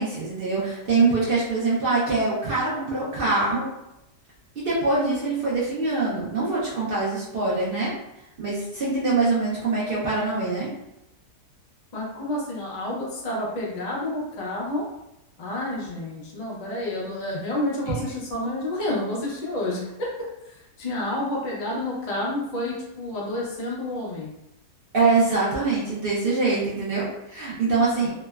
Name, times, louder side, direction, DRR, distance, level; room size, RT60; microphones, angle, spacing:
voice 1, 0.0-3.7 4.6-7.9 8.4-10.7 17.8-17.9 24.9-28.1, right 3 dB, 75° right, -7 dB, 0.5 m, -24 dB
voice 2, 11.9-14.8 15.4-24.3 26.8-26.9 27.9-28.1, left 1 dB, 80° left, -4 dB, 0.3 m, -30 dB
3.1 x 2.1 x 2.3 m, 0.88 s
omnidirectional pair, 1.7 m